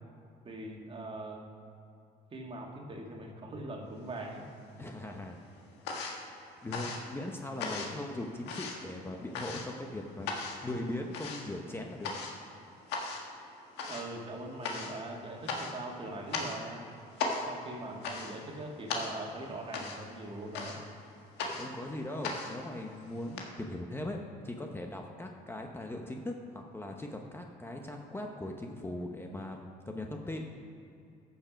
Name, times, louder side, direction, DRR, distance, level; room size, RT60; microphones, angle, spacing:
voice 1, 0.4-1.5 2.3-4.5 13.8-16.9 17.5-20.8, right 2 dB, 30° right, 1 dB, 1.9 m, -42 dB
sound 1, 4.1-4.9 5.2-23.4, left 3 dB, 90° left, 1.6 m, -39 dB
voice 2, 4.8-5.4 5.9-12.1 21.5-30.5, left 1 dB, 15° left, 2 dB, 0.9 m, -40 dB
14.0 x 6.8 x 5.2 m, 2.6 s
cardioid pair, 110°, 17 cm